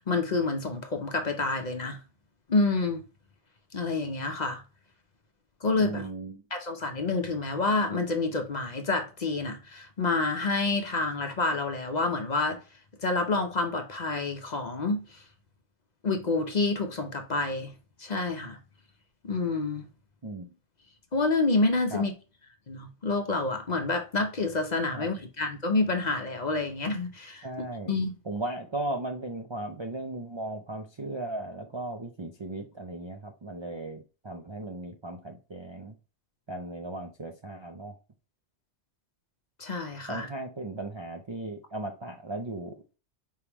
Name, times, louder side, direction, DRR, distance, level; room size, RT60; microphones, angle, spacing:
voice 1, 0.1-2.0 2.5-3.0 3.7-4.6 5.6-6.1 6.5-12.6 13.0-15.2 16.0-17.7 18.0-18.6 19.2-19.9 21.1-22.1 22.7-28.2 39.6-40.3, left 3 dB, 45° left, 0.7 m, -28 dB
voice 2, 5.8-6.4 20.2-20.5 21.9-22.1 24.9-25.1 27.4-27.9 28.3-35.9 36.5-37.9 40.1-43.0, right 2 dB, 40° right, 0.4 m, -37 dB
4.7 x 3.5 x 2.9 m
omnidirectional pair, 1.2 m